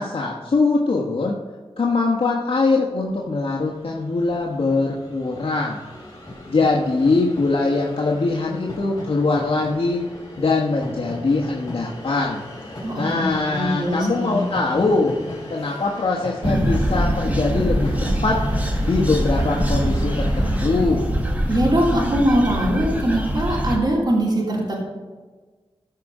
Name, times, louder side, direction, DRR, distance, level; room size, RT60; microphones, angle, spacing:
voice 1, 0.0-1.4 1.8-5.8 6.5-10.0 10.4-12.4 13.0-15.1 15.5-18.4 18.8-21.1, left 3 dB, 65° left, -3 dB, 1.3 m, -22 dB
Train, 3.3-3.4 3.6-22.0, left 1 dB, 35° left, 3.6 m, -37 dB
voice 2, 12.8-13.2 13.5-14.4 21.5-24.7, right 1 dB, 45° right, -4 dB, 2.9 m, -21 dB
sound 1, 16.4-23.8, equal, 15° right, 1.5 m, -23 dB
14.0 x 4.9 x 5.4 m, 1.4 s
wide cardioid pair, 95°, 10 cm